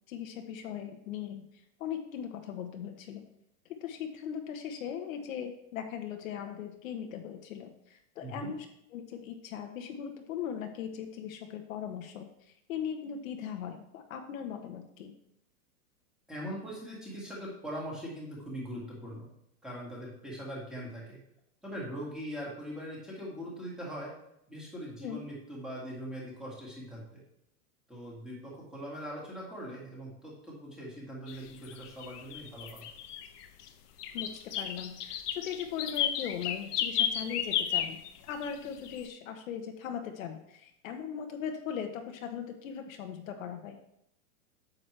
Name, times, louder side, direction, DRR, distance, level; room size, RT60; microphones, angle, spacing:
voice 1, 0.1-1.4 1.8-3.3 3.8-8.6 8.9-12.3 12.7-15.1 25.0-25.2 34.1-38.0 38.2-43.8, left 8 dB, 60° left, 5 dB, 1.1 m, -39 dB
voice 2, 16.3-19.3 19.6-21.2 21.6-24.1 24.5-27.2 27.9-32.9, equal, ahead, -5 dB, 1.9 m, -41 dB
sound 1, 31.3-31.4 31.6-33.7 34.0-38.6 38.8-39.0, left 9 dB, 85° left, 1.0 m, -33 dB
8.9 x 7.5 x 3.3 m, 0.75 s
supercardioid pair, 165°, 45 cm